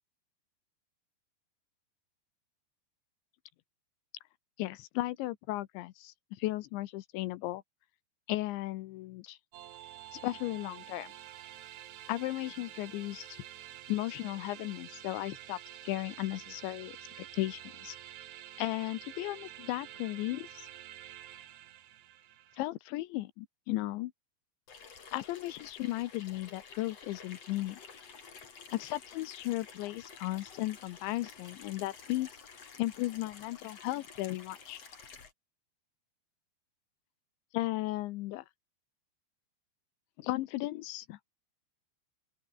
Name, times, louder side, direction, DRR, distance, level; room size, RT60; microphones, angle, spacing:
voice 1, 4.6-7.6 8.3-9.4 10.1-11.1 12.1-13.4 13.9-15.6 15.8-18.0 18.6-20.7 22.5-24.1 25.1-27.8 28.7-32.4 32.8-34.8 37.5-38.5 40.2-41.2, left 17 dB, 80° left, 3.2 m, -35 dB
sound 1, 9.5-22.6, right 12 dB, 70° right, 3.6 m, -49 dB
Water tap faucet / Sink (filling or washing), 24.7-35.3, left 6 dB, 35° left, 3.8 m, -51 dB
open air
omnidirectional pair, 5.3 m